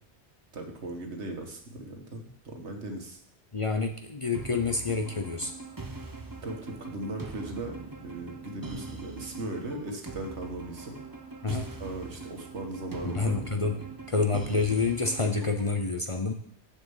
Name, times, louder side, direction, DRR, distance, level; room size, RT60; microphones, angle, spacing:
voice 1, 0.5-3.2 6.4-7.8 8.0-11.0 11.5-13.4, right 2 dB, 75° right, 3 dB, 1.8 m, -38 dB
voice 2, 3.5-5.5 11.4-11.7 13.0-16.3, left 4 dB, 35° left, 4 dB, 0.7 m, -28 dB
sound 1, 4.3-15.8, right 3 dB, 20° right, 0.9 m, -42 dB
7.3 x 6.8 x 7.2 m, 0.64 s
omnidirectional pair, 1.2 m